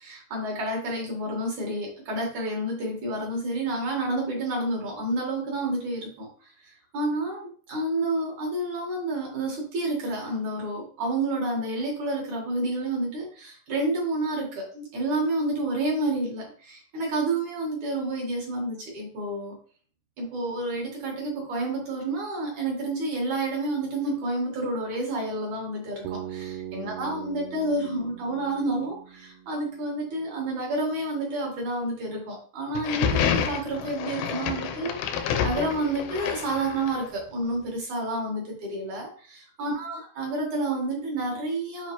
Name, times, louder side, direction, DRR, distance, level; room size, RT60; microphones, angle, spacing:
voice 1, 0.0-6.3 6.6-19.6 20.2-41.9, right 2 dB, 55° right, -1 dB, 2.4 m, -29 dB
Bass guitar, 26.1-30.0, right 11 dB, 80° right, 2.8 m, -40 dB
sound 1, 32.7-37.1, left 7 dB, 75° left, 2.5 m, -28 dB
7.5 x 4.9 x 3.1 m, 0.43 s
omnidirectional pair, 5.1 m